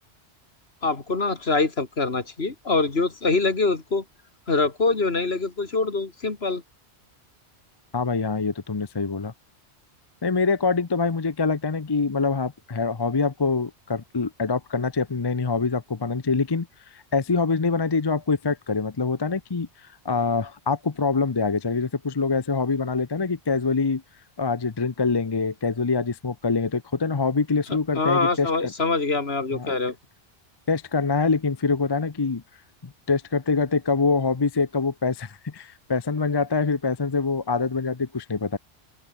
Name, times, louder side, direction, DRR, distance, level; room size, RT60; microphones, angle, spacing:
voice 1, 0.8-4.0 4.5-6.6 27.9-30.0, left 3 dB, 65° left, 2.7 m, -24 dB
voice 2, 7.9-9.3 10.2-16.7 16.9-19.7 20.0-24.0 24.4-28.7 29.5-29.7 30.7-32.4 32.8-38.6, left 4 dB, 25° left, 0.7 m, -25 dB
open air
omnidirectional pair, 1.1 m